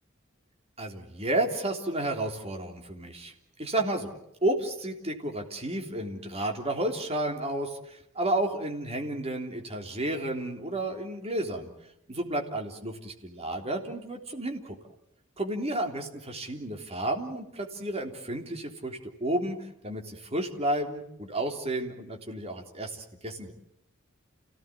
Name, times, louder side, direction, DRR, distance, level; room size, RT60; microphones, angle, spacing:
voice 1, 0.8-3.3 3.6-11.7 12.1-14.8 15.4-23.5, right 1 dB, 30° right, 2 dB, 3.5 m, -32 dB
29.5 x 17.5 x 8.6 m, 0.80 s
head